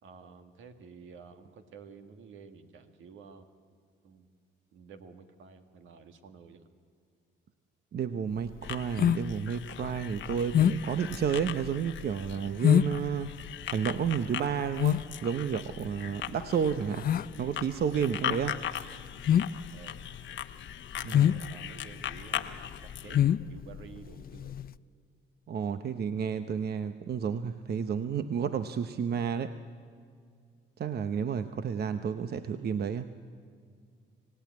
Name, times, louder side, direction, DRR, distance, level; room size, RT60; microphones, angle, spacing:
voice 1, 0.0-3.5 4.0-4.3 4.7-6.7 19.7-20.0 21.0-24.6 32.3-32.7, right 5 dB, 80° right, 7 dB, 1.9 m, -51 dB
voice 2, 7.9-13.3 13.7-17.1 17.4-18.6 21.0-21.4 25.5-29.6 30.8-33.1, right 7 dB, 55° right, 10 dB, 0.8 m, -31 dB
sound 1, 8.4-24.7, left 10 dB, 50° left, 0.5 m, -28 dB
sound 2, 8.6-23.2, left 11 dB, 70° left, 1.0 m, -40 dB
25.5 x 17.0 x 9.4 m, 2.2 s
cardioid pair, 90°, 20 cm